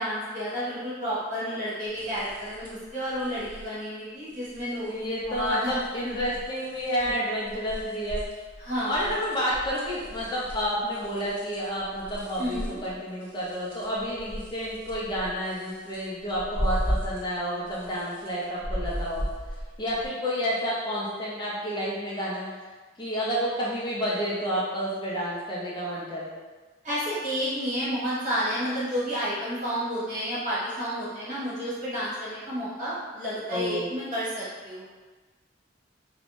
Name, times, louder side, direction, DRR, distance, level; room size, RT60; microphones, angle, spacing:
voice 1, 0.0-5.7 6.0-6.2 7.0-7.1 7.8-7.9 8.6-9.1 12.4-12.8 26.8-34.9, equal, 40° right, -10 dB, 1.2 m, -31 dB
sound 1, 1.9-2.9 3.1-3.7 4.3-4.9 5.2-7.2 7.5-17.4 17.7-20.1, equal, 10° right, 1.4 m, -36 dB
voice 2, 4.9-8.2 8.9-19.2 19.8-22.5 23.0-26.3 33.5-33.9, equal, 25° left, -6 dB, 0.4 m, -30 dB
2.5 x 2.0 x 3.0 m, 1.3 s
head